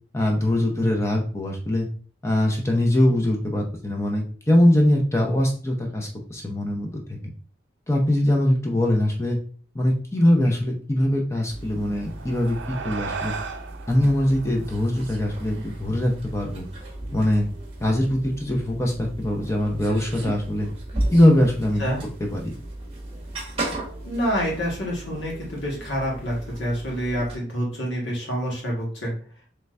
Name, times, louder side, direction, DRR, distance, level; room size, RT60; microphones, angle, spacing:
voice 1, 0.1-1.9 2.2-7.0 7.9-9.4 9.7-13.3 13.9-16.6 17.1-17.5 17.8-20.7 21.1-21.8 22.3-22.5, left 1 dB, 15° left, 1 dB, 0.6 m, -22 dB
sound 1, 11.5-27.4, right 1 dB, 30° right, 1.0 m, -35 dB
sound 2, 11.8-16.6, right 5 dB, 75° right, 0.5 m, -37 dB
voice 2, 24.0-29.1, equal, 75° left, -3 dB, 1.8 m, -27 dB
3.9 x 3.3 x 3.2 m, 0.43 s
head